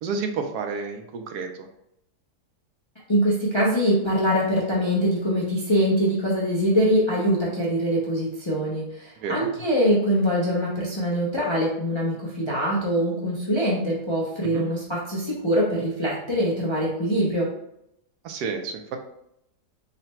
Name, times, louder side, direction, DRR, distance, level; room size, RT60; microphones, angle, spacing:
voice 1, 0.0-1.7 9.2-9.5 14.4-14.6 18.2-19.0, right 5 dB, 80° right, 5 dB, 1.1 m, -30 dB
voice 2, 3.1-17.5, equal, 35° left, -5 dB, 0.4 m, -23 dB
3.9 x 2.1 x 4.2 m, 0.77 s
omnidirectional pair, 1.7 m